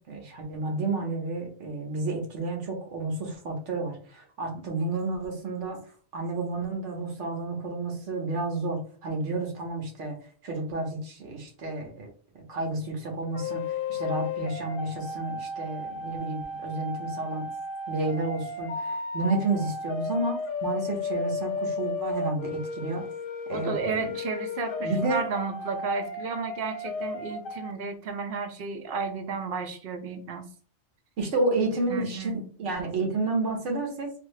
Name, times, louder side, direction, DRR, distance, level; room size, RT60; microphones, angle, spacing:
voice 1, 0.1-5.8 6.1-10.2 10.4-12.1 12.3-17.5 17.9-23.1 23.5-24.1 24.8-25.2 31.2-34.1, right 2 dB, 85° right, 2 dB, 1.4 m, -31 dB
sound 1, 13.3-27.7, left 3 dB, 60° left, 0.7 m, -34 dB
voice 2, 23.5-30.5 31.9-32.5, right 4 dB, 60° right, 6 dB, 0.9 m, -32 dB
3.7 x 3.0 x 3.2 m, 0.43 s
omnidirectional pair, 1.2 m